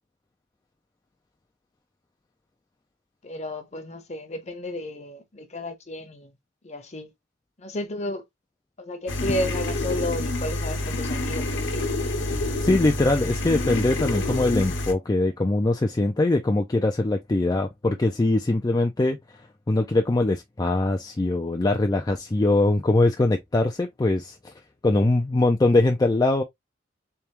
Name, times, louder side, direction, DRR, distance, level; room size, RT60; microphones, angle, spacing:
voice 1, 3.2-6.3 6.6-7.1 7.6-8.2 8.8-11.8, left 1 dB, 35° left, 0.8 m, -32 dB
sound 1, 9.1-14.9, left 2 dB, 70° left, 1.1 m, -27 dB
voice 2, 12.6-19.2 19.7-24.5 24.8-26.4, left 2 dB, 20° left, 0.4 m, -22 dB
3.4 x 3.4 x 2.9 m
head